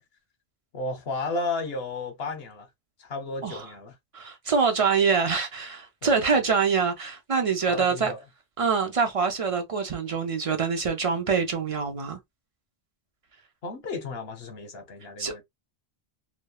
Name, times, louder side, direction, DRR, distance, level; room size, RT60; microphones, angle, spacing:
voice 1, 0.7-2.7 3.0-4.0 6.0-6.4 7.7-8.2 13.6-15.4, left 3 dB, 70° left, 1.1 m, -33 dB
voice 2, 4.1-8.1 8.6-12.2 15.2-15.4, right 5 dB, 50° right, 0.4 m, -25 dB
3.1 x 2.1 x 2.2 m
omnidirectional pair, 1.0 m